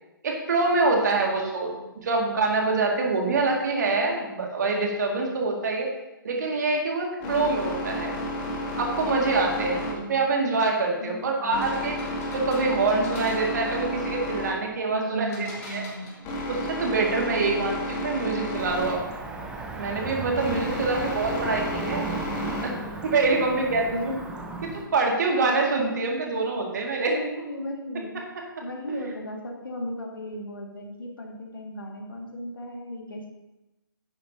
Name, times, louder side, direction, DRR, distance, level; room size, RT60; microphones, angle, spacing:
voice 1, 0.2-1.7 2.0-5.9 6.2-8.2 8.8-12.0 12.3-15.8 16.5-19.0 19.8-22.1 22.6-22.7 23.0-24.0 24.6-27.1, right 3 dB, 50° right, 1 dB, 1.9 m, -25 dB
voice 2, 0.9-2.0 7.2-7.5 9.8-10.3 11.0-11.7 14.9-16.2 17.2-17.9 20.3-21.1 23.3-23.6 23.9-24.2 27.1-28.2 28.6-33.3, equal, 70° left, 1 dB, 1.8 m, -37 dB
sound 1, 7.2-22.7, equal, 25° left, 2.0 m, -33 dB
sound 2, 11.4-13.8 15.3-16.6, left 2 dB, 45° left, 2.9 m, -44 dB
Cricket / Motor vehicle (road), 18.6-24.8, right 3 dB, 5° right, 0.8 m, -36 dB
10.0 x 8.6 x 2.7 m, 1.0 s
figure-of-eight pair, 130°, 12 cm